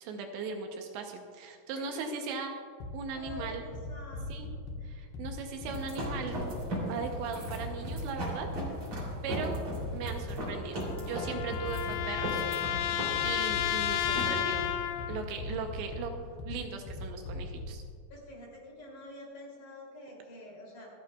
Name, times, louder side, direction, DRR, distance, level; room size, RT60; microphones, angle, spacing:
voice 1, 0.0-2.5 2.9-3.6 4.3-4.5 4.8-6.4 6.9-8.5 9.2-9.6 9.9-12.5 13.2-14.7 15.1-16.1 16.4-17.8, right 5 dB, 80° right, 4 dB, 3.0 m, -38 dB
voice 2, 1.7-2.2 3.1-4.5 18.1-20.9, left 1 dB, 45° left, -3 dB, 4.0 m, -48 dB
sound 1, 2.8-17.8, left 2 dB, 65° left, 3.0 m, -41 dB
sound 2, 5.7-16.4, right 1 dB, 35° right, 3.2 m, -38 dB
sound 3, 10.6-15.3, left 12 dB, 80° left, 2.8 m, -32 dB
26.5 x 9.4 x 2.3 m, 2.3 s
omnidirectional pair, 5.4 m